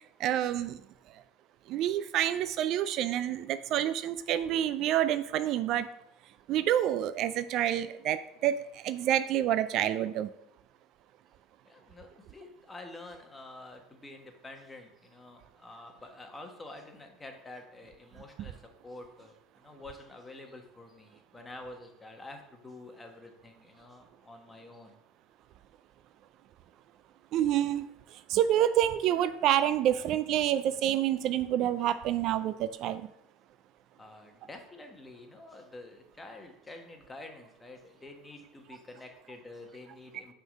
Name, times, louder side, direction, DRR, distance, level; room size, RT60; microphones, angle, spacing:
voice 1, 0.2-0.8 1.7-5.9 6.5-10.3 18.4-18.5 27.3-27.9 28.1-33.1, right 11 dB, 55° right, 13 dB, 0.3 m, -28 dB
voice 2, 11.6-25.0 34.0-40.3, left 2 dB, 15° left, 4 dB, 1.1 m, -48 dB
5.8 x 3.7 x 5.2 m, 0.79 s
supercardioid pair, 95°, 0 cm